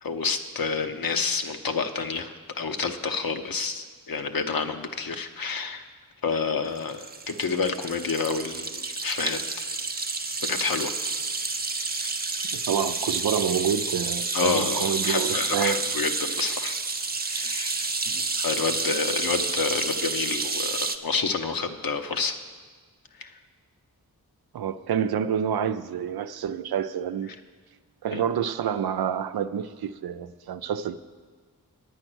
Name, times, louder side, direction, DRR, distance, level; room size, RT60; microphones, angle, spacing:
voice 1, 0.0-2.3 2.6-5.8 6.2-9.6 10.4-10.9 12.0-12.1 14.3-16.8 17.2-17.9 18.4-22.4 23.2-23.3 28.1-28.2, left 5 dB, 65° left, 0.9 m, -29 dB
sound 1, 6.8-21.0, right 3 dB, 25° right, 0.6 m, -30 dB
voice 2, 12.5-15.8 18.1-18.2 24.5-27.3 28.0-31.0, right 8 dB, 80° right, 0.5 m, -28 dB
9.3 x 9.0 x 6.2 m
cardioid pair, 45°, 37 cm